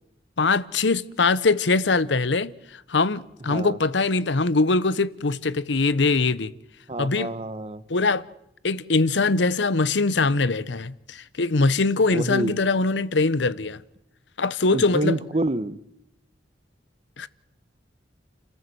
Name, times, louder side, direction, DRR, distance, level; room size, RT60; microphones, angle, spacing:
voice 1, 0.4-6.5 7.0-7.3 7.9-8.2 8.6-13.8 14.4-15.2 17.2-17.3, left 3 dB, 70° left, 0.8 m, -22 dB
voice 2, 6.9-7.8 12.1-12.6 14.7-15.8, right 2 dB, 35° right, 1.0 m, -27 dB
30.0 x 15.0 x 7.8 m
head